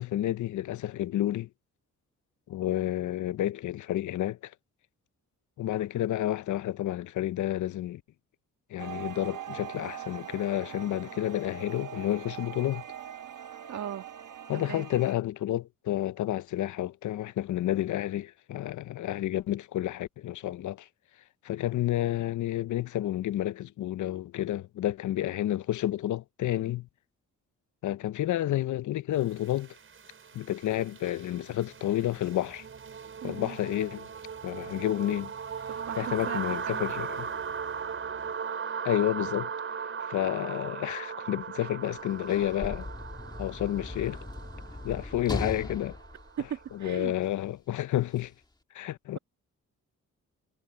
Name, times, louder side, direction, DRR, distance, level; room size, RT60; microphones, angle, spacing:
voice 1, 0.0-1.5 2.5-4.5 5.6-8.0 8.7-12.8 14.5-20.9 21.4-26.9 27.8-29.7 30.3-32.6 33.2-34.1 34.4-35.3 36.0-37.3 38.8-39.5 40.1-42.9 43.4-44.2 44.8-46.0 46.8-48.3 48.7-49.2, left 13 dB, 75° left, 0.6 m, -30 dB
sound 1, 8.8-15.1, right 10 dB, 85° right, 1.7 m, -42 dB
voice 2, 13.7-14.1 14.5-14.9 33.2-33.6 35.7-36.8 46.4-47.1, right 9 dB, 65° right, 1.7 m, -38 dB
sound 2, 29.3-47.1, right 6 dB, 45° right, 6.1 m, -38 dB
Sliding door / Slam, 41.8-47.2 48.1-48.3, left 2 dB, 15° left, 2.0 m, -39 dB
wide cardioid pair, 145°, 30 cm